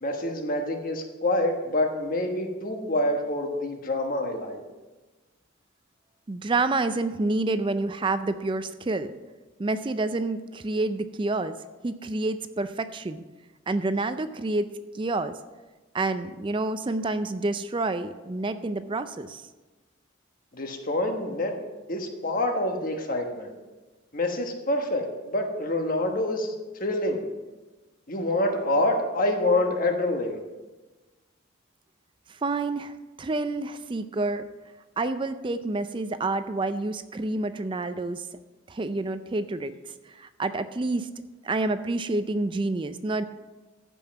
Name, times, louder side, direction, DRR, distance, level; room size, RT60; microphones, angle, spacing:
voice 1, 0.0-4.6 20.5-21.5 21.9-23.5 24.1-26.5 26.8-27.2 28.1-30.4, left 1 dB, 45° left, 3 dB, 1.3 m, -26 dB
voice 2, 6.3-9.1 9.6-11.6 11.8-13.2 13.7-15.3 15.9-19.5 32.3-34.5 35.0-38.3 38.7-41.1 41.4-43.2, right 2 dB, 25° right, 11 dB, 0.4 m, -28 dB
14.5 x 5.4 x 5.9 m, 1.2 s
head